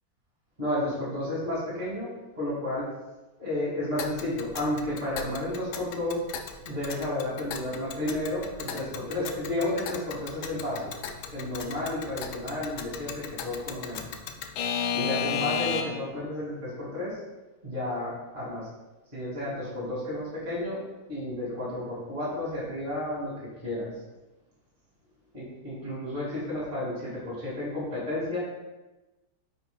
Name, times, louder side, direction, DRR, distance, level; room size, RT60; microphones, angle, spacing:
voice 1, 0.6-2.1 2.3-2.8 3.4-6.2 6.6-10.9 11.3-14.1 14.9-17.2 17.6-18.7 19.1-20.8 21.1-23.3 23.6-23.9 25.3-28.4, left 1 dB, 25° right, -8 dB, 2.8 m, -32 dB
Alarm / Clock, 4.0-16.1, left 7 dB, 90° left, 1.5 m, -35 dB
9.2 x 6.0 x 2.4 m, 1.1 s
omnidirectional pair, 2.3 m